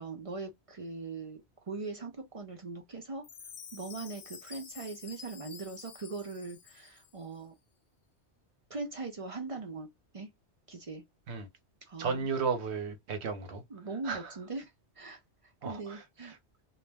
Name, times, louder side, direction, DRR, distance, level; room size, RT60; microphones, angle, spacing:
voice 1, 0.0-3.3 3.7-7.5 8.7-10.3 10.7-11.0 11.8-12.3 13.7-16.3, right 3 dB, 40° right, 0.5 m, -41 dB
Chime, 3.2-7.2, left 6 dB, 55° left, 0.3 m, -50 dB
voice 2, 12.0-13.6 14.0-14.2 15.6-16.0, right 5 dB, 75° right, 1.0 m, -33 dB
2.3 x 2.0 x 3.3 m
omnidirectional pair, 1.2 m